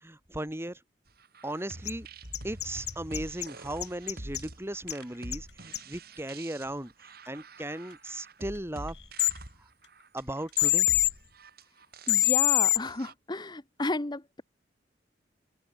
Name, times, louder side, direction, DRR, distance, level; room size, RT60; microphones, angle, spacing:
voice 1, 0.0-0.8 1.4-2.1 2.4-6.9 7.3-9.0 10.1-10.9, right 1 dB, 15° right, 2.1 m, -37 dB
sound 1, 1.2-13.1, right 1 dB, 55° right, 6.5 m, -46 dB
sound 2, 1.9-2.0 2.3-3.5 3.8-4.4 4.9-5.0 5.3-5.4 5.7-5.8 9.2-9.3 10.6-11.1 12.1-12.8, left 16 dB, 60° left, 0.7 m, -24 dB
sound 3, 5.0-5.5 5.8-6.0 6.3-6.7 7.3-8.1 8.4-8.6 8.9-9.4 9.8-10.7, left 8 dB, 80° left, 4.9 m, -59 dB
voice 2, 12.1-14.4, left 2 dB, 25° left, 1.0 m, -33 dB
open air
head